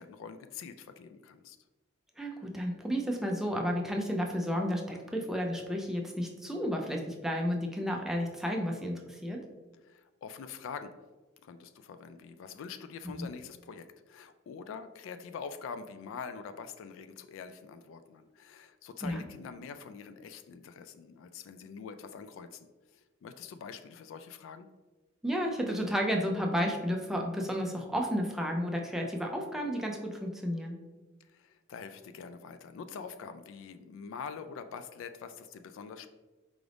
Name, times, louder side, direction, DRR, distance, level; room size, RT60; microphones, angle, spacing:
voice 1, 0.0-1.6 9.8-11.0 11.4-24.7 31.2-36.1, left 6 dB, 65° left, 10 dB, 0.3 m, -45 dB
voice 2, 2.2-9.4 13.2-13.3 19.0-19.2 25.2-30.8, equal, ahead, 0 dB, 0.4 m, -32 dB
4.8 x 2.5 x 3.3 m, 1.2 s
head